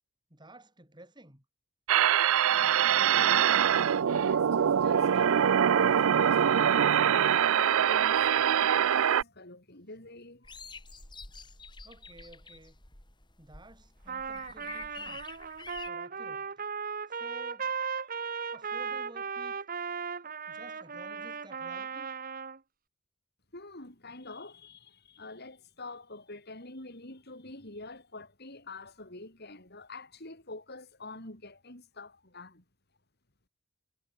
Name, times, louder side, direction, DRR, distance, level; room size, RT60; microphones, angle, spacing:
voice 1, 0.3-1.4 11.8-12.8 13.4-15.3 15.9-16.5 17.1-17.8 18.5-19.6 20.5-22.1, right 1 dB, 20° right, 5.3 m, -53 dB
sound 1, 1.9-9.2, right 9 dB, 75° right, 0.4 m, -24 dB
voice 2, 3.0-3.5 4.0-5.5 5.8-7.1 7.5-10.5 23.5-32.6, left 2 dB, 50° left, 5.5 m, -46 dB
sound 2, 10.4-15.9, left 4 dB, 20° left, 3.8 m, -47 dB
Trumpet, 14.1-22.6, right 6 dB, 45° right, 1.3 m, -37 dB
head